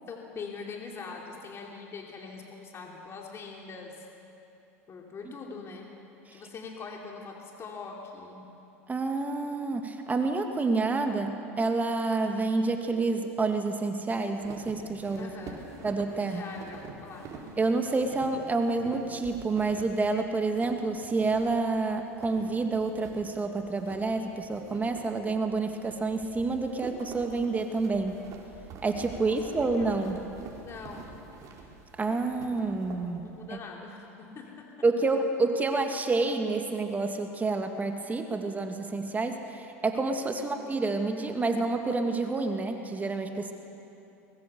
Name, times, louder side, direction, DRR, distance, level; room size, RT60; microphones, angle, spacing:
voice 1, 0.1-4.1 4.9-5.9 6.3-8.5 15.2-15.7 16.2-17.4 29.1-30.0 30.6-31.1 33.2-34.7 40.4-40.5, left 4 dB, 35° left, 0 dB, 3.0 m, -43 dB
voice 2, 8.9-15.3 15.8-16.5 17.6-28.2 28.8-30.2 32.0-33.3 34.8-43.5, right 3 dB, 20° right, 5 dB, 2.1 m, -28 dB
sound 1, 14.4-33.6, right 4 dB, 45° right, 4.6 m, -47 dB
23.5 x 21.5 x 6.9 m, 2.9 s
hypercardioid pair, 85°, 8 cm